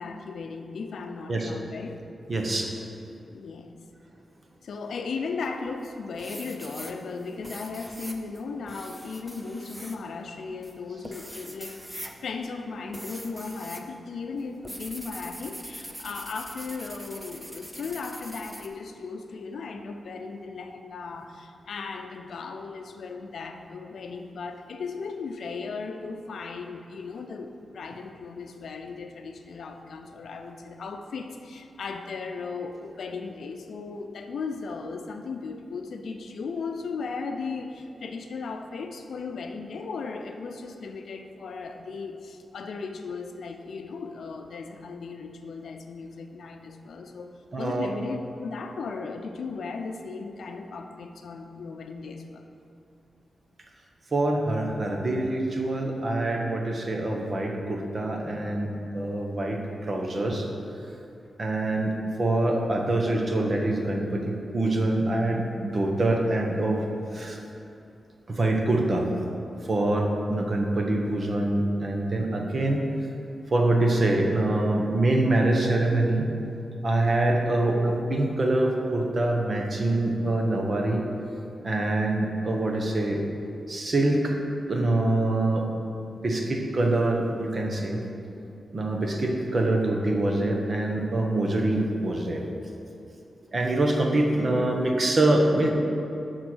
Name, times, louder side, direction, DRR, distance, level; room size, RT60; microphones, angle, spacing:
voice 1, 0.0-2.0 3.3-3.8 4.6-27.5 27.7-52.5, left 4 dB, 75° left, 5 dB, 0.6 m, -36 dB
voice 2, 2.3-2.7 47.5-47.9 54.1-60.5 61.4-61.9 62.2-66.9 67.1-67.4 68.3-69.1 69.6-72.9 73.5-76.3 76.8-81.0 81.6-83.2 83.7-84.4 84.7-85.6 86.1-88.0 88.7-92.4 93.5-95.7, right 2 dB, 35° right, 1 dB, 1.0 m, -25 dB
sound 1, 5.4-5.9 6.2-13.9 14.2-18.7, equal, 5° right, 0.6 m, -43 dB
11.5 x 4.3 x 6.2 m, 2.7 s
wide cardioid pair, 175°, 0 cm